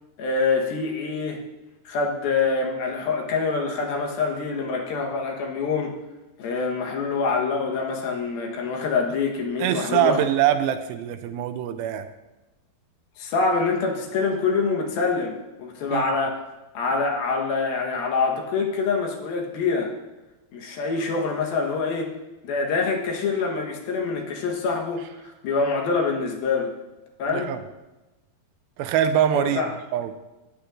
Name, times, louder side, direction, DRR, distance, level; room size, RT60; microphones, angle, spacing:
voice 1, 0.2-1.4 1.9-5.9 6.4-10.2 13.2-16.4 16.7-19.9 20.5-22.1 22.4-25.0 25.4-26.7 27.2-27.5 29.3-29.7, left 4 dB, 80° left, 1 dB, 3.1 m, -25 dB
voice 2, 9.6-12.1 15.9-16.1 27.3-27.6 28.8-29.6 29.9-30.2, right 10 dB, 85° right, 9 dB, 2.4 m, -23 dB
17.0 x 8.4 x 2.5 m, 1.1 s
omnidirectional pair, 4.3 m